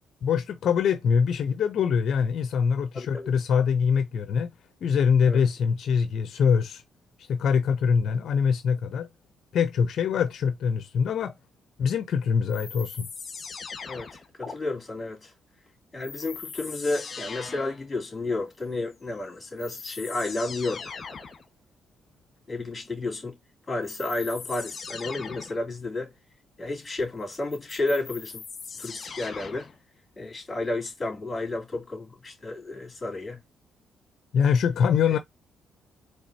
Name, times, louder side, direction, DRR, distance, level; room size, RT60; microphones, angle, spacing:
voice 1, 0.2-4.5 4.8-6.8 7.2-9.1 9.5-11.3 11.8-13.1 34.3-35.2, left 6 dB, 65° left, 0.5 m, -24 dB
voice 2, 2.9-3.3 5.2-5.4 13.9-15.3 15.9-20.9 22.5-23.4 23.7-26.1 26.6-28.4 28.8-29.7 30.2-33.4 35.1-35.2, left 2 dB, 20° left, 2.9 m, -31 dB
sound 1, 12.5-14.5 16.0-17.8 19.1-19.2 19.6-21.4 23.8-25.6 27.3-29.8, left 5 dB, 40° left, 1.3 m, -40 dB
4.3 x 3.2 x 2.7 m
cardioid pair, 90°, 0 cm